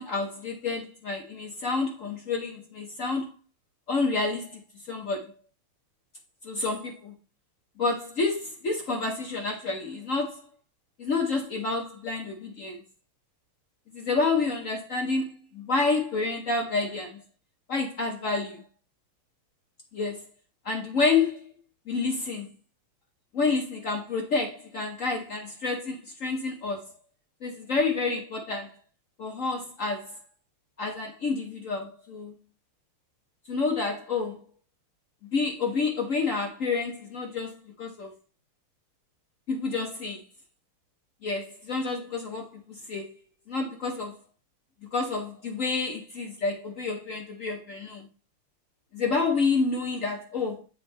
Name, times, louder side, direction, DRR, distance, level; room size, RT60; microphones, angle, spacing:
voice 1, 0.0-3.3 3.9-4.6 4.9-5.3 6.4-7.1 7.8-10.4 11.0-12.8 13.9-17.2 17.7-18.6 19.9-20.2 20.6-21.6 21.9-22.5 23.3-26.9 27.4-28.7 29.2-30.2 30.8-32.3 33.5-34.4 35.3-38.1 39.5-40.2 41.2-43.2 43.5-44.2 44.8-48.1 48.9-50.6, left 4 dB, 65° left, 0.8 m, -29 dB
8.5 x 4.3 x 3.2 m
omnidirectional pair, 2.4 m